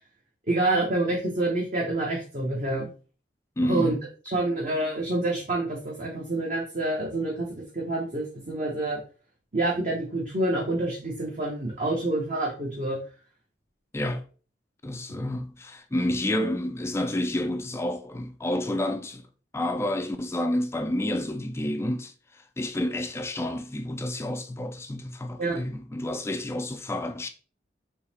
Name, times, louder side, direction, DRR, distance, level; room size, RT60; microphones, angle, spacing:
voice 1, 0.5-2.9 3.7-3.9 4.3-9.0 9.5-13.0 25.4-25.6, right 2 dB, 45° right, 1.1 m, -27 dB
voice 2, 3.6-4.0 13.9-14.2 14.8-19.3 19.5-27.3, left 1 dB, 15° left, 0.4 m, -29 dB
3.9 x 3.0 x 4.2 m
head